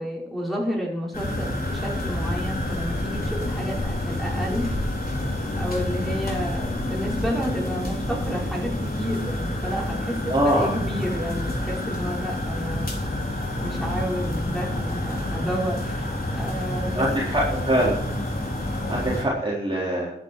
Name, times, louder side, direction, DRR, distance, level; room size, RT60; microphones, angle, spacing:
voice 1, 0.0-4.7 5.5-8.7 9.0-13.0 13.6-17.0, equal, ahead, -3 dB, 5.5 m, -31 dB
sound 1, 1.1-19.3, left 1 dB, 50° left, 3.8 m, -28 dB
voice 2, 10.3-10.7 16.9-17.9 18.6-20.1, right 1 dB, 25° right, -7 dB, 4.2 m, -23 dB
12.0 x 10.5 x 4.9 m, 0.75 s
wide cardioid pair, 70°, 19 cm